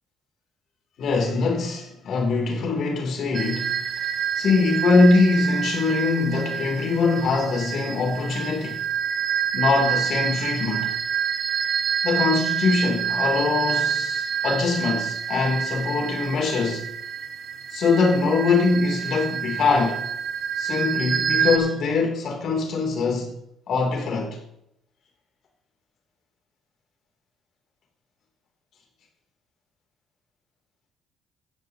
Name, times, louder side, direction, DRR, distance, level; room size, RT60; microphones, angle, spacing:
voice 1, 1.0-3.8 4.4-8.8 9.5-10.9 12.0-16.9 17.7-20.1 20.6-23.3 23.7-24.4, left 4 dB, 60° left, 3.0 m, -22 dB
sound 1, 3.3-21.6, right 7 dB, 50° right, 1.2 m, -27 dB
15.0 x 10.0 x 2.9 m
cardioid pair, 95°, 0 cm